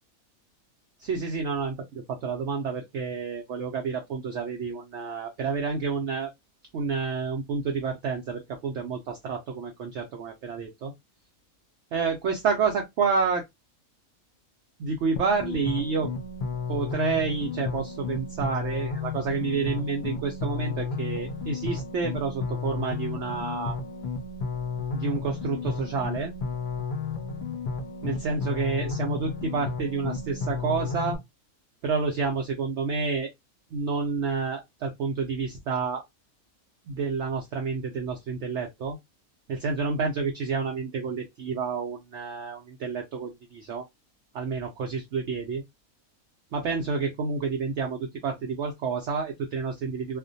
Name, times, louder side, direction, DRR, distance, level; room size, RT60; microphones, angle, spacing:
voice 1, 1.0-6.3 6.7-10.9 11.9-13.4 14.8-16.1 16.7-23.8 24.9-26.3 28.0-31.2 31.8-33.3 33.7-36.0 36.9-39.0 39.5-43.8 44.3-45.6 46.5-50.2, right 5 dB, 65° right, 0.7 m, -29 dB
sound 1, 15.2-31.2, left 4 dB, 90° left, 0.4 m, -33 dB
2.4 x 2.1 x 2.5 m
omnidirectional pair, 1.5 m